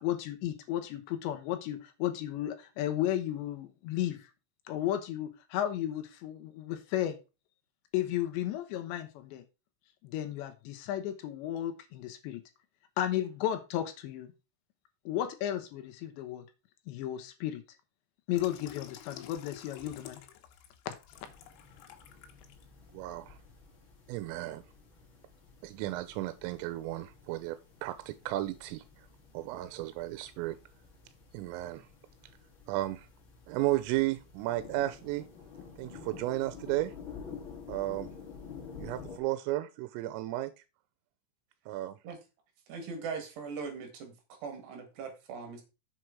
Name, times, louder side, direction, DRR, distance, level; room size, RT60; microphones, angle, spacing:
voice 1, 0.0-4.3 4.7-7.2 7.9-9.4 10.0-12.4 13.0-14.3 15.1-16.5 16.9-17.6 18.3-20.2, left 12 dB, 75° left, 3.0 m, -34 dB
Water tap faucet / Sink (filling or washing), 18.3-22.6 23.1-23.3, left 11 dB, 90° left, 3.8 m, -50 dB
sound 1, 21.1-39.2, left 5 dB, 45° left, 1.6 m, -50 dB
voice 2, 22.9-23.4 24.1-24.6 25.6-28.8 29.3-30.6 31.3-31.9 32.7-33.1 33.5-35.2 35.8-36.9 37.7-38.1 38.7-40.5 41.7-42.0, right 16 dB, 90° right, 3.3 m, -34 dB
voice 3, 42.7-44.2 44.4-45.6, right 5 dB, 65° right, 3.8 m, -40 dB
7.6 x 6.5 x 4.6 m
omnidirectional pair, 5.7 m